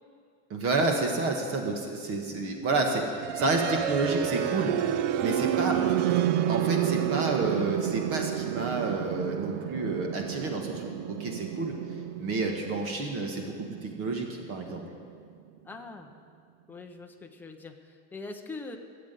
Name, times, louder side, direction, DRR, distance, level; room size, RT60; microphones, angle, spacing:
voice 1, 0.5-4.7 5.2-5.8 6.5-11.7 12.2-13.5 13.8-14.8, right 3 dB, 35° right, 2 dB, 1.6 m, -29 dB
sound 1, 3.2-15.1, right 11 dB, 70° right, 0.7 m, -30 dB
voice 2, 15.7-16.1 16.7-18.8, left 3 dB, 5° left, 3 dB, 0.5 m, -42 dB
15.0 x 7.7 x 9.1 m, 2.2 s
cardioid pair, 175°, 38 cm